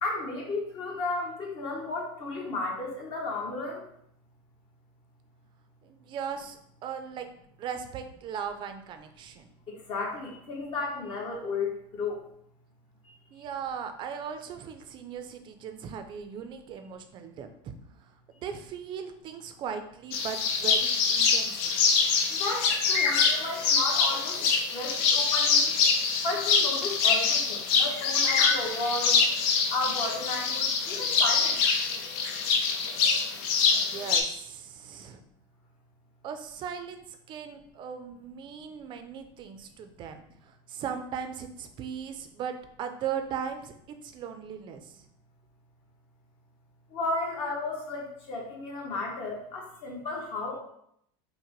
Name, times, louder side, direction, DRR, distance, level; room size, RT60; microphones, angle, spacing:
voice 1, 0.0-3.8 9.7-12.3 13.0-13.1 18.3-18.4 22.3-25.8 26.2-29.2 29.7-31.6 46.9-50.6, left 3 dB, 45° left, -1 dB, 1.1 m, -33 dB
voice 2, 5.8-7.3 7.6-9.5 13.3-17.7 18.0-18.1 18.4-21.8 33.7-35.2 36.2-45.1, right 7 dB, 35° right, 7 dB, 0.5 m, -38 dB
sound 1, 20.1-34.2, left 5 dB, 65° left, 0.6 m, -25 dB
5.7 x 2.1 x 3.0 m, 0.72 s
supercardioid pair, 135°, 13 cm